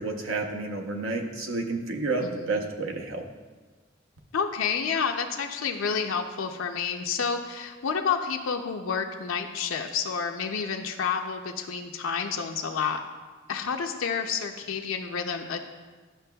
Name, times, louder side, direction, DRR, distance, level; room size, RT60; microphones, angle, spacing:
voice 1, 0.0-3.3, right 3 dB, 75° right, 2 dB, 0.8 m, -30 dB
voice 2, 4.3-13.0 13.5-15.6, left 6 dB, 75° left, 4 dB, 0.5 m, -29 dB
11.0 x 5.8 x 2.2 m, 1.3 s
head